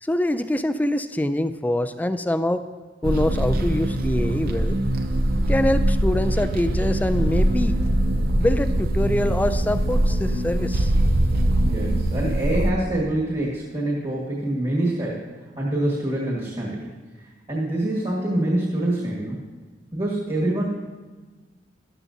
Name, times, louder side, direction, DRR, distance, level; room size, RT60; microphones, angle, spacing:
voice 1, 0.0-2.7 3.0-4.8 5.5-7.7 8.4-10.9, left 1 dB, 10° left, 10 dB, 0.3 m, -24 dB
sound 1, 3.0-12.7, right 1 dB, 55° right, 0.7 m, -22 dB
voice 2, 11.6-15.3 15.6-16.9 17.5-19.4 19.9-20.6, right 1 dB, 30° right, -5 dB, 1.7 m, -25 dB
13.0 x 11.5 x 2.7 m, 1.3 s
head